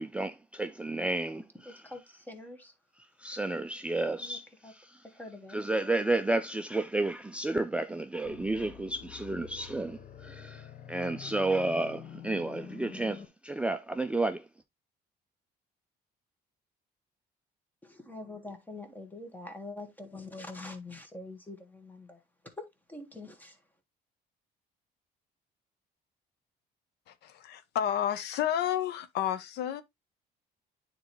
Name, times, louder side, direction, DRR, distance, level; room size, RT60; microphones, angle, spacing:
voice 1, 0.0-1.4 1.7-1.8 3.2-5.0 5.5-14.4, right 2 dB, 5° right, 0.4 m, -31 dB
voice 2, 1.6-2.7 4.2-4.7 5.0-5.6 17.8-22.2 22.6-23.6, left 2 dB, 10° left, 1.6 m, -45 dB
sound 1, 8.2-13.2, left 9 dB, 55° left, 1.0 m, -47 dB
voice 3, 27.1-29.8, left 10 dB, 75° left, 0.8 m, -31 dB
9.4 x 4.0 x 3.0 m
cardioid pair, 110°, 17 cm